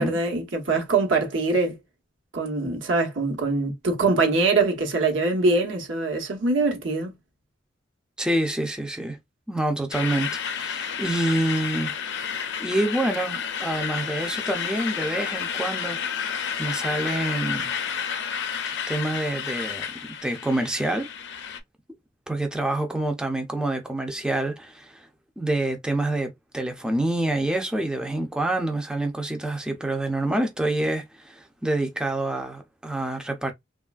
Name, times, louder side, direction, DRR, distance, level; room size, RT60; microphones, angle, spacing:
voice 1, 0.0-1.7 2.3-7.1, right 3 dB, 85° right, 1.0 m, -23 dB
voice 2, 8.2-9.2 9.5-12.3 12.6-16.0 16.6-17.7 18.9-19.9 20.2-21.1 22.3-25.1 25.4-33.5, right 1 dB, 5° right, 0.4 m, -27 dB
sound 1, 9.9-21.6, left 7 dB, 65° left, 0.5 m, -31 dB
3.0 x 2.3 x 2.3 m
head